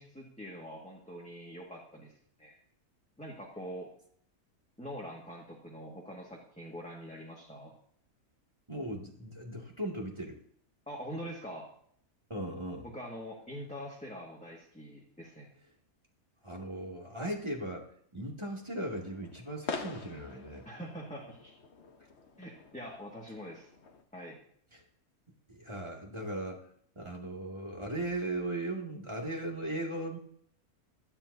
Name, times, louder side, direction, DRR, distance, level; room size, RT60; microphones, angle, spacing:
voice 1, 0.0-2.1 2.4-2.6 3.2-3.9 4.8-7.7 10.9-11.6 12.8-15.5 20.6-21.5 22.4-23.7 24.1-24.4, equal, 5° left, -3 dB, 1.8 m, -44 dB
voice 2, 8.7-10.4 12.3-12.9 16.4-17.9 18.1-20.6 24.7-24.8 25.5-26.6 27.0-30.2, right 1 dB, 20° right, -1 dB, 2.3 m, -37 dB
sound 1, 18.9-24.0, left 4 dB, 50° left, 1.4 m, -45 dB
16.5 x 12.5 x 2.8 m, 0.63 s
omnidirectional pair, 1.6 m